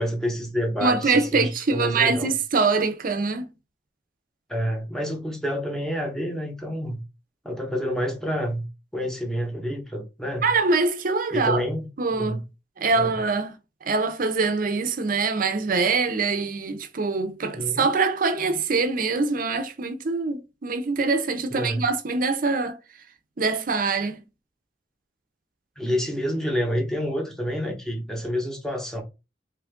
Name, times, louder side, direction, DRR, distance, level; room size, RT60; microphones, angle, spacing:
voice 1, 0.0-2.3 4.5-7.0 7.4-8.7 8.9-10.5 11.3-12.4 12.9-13.2 17.5-17.9 21.5-21.8 25.8-29.0, equal, 5° left, 0.8 m, -28 dB
voice 2, 0.8-3.5 10.4-11.6 12.0-12.4 12.8-13.5 13.8-22.8 23.4-24.2, right 4 dB, 50° right, 0.6 m, -24 dB
3.2 x 2.4 x 3.5 m
head